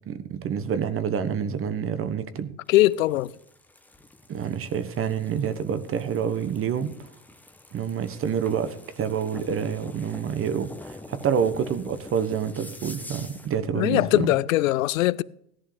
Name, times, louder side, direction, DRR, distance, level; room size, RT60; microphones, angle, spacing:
voice 1, 0.0-2.5 4.3-6.9 7.7-14.3, right 7 dB, 30° right, 1.2 m, -28 dB
voice 2, 2.7-3.3 13.7-15.2, left 16 dB, 75° left, 0.6 m, -21 dB
sound 1, 2.7-13.6, left 2 dB, 5° left, 1.1 m, -46 dB
17.0 x 11.0 x 3.4 m
hypercardioid pair, 80°, 41 cm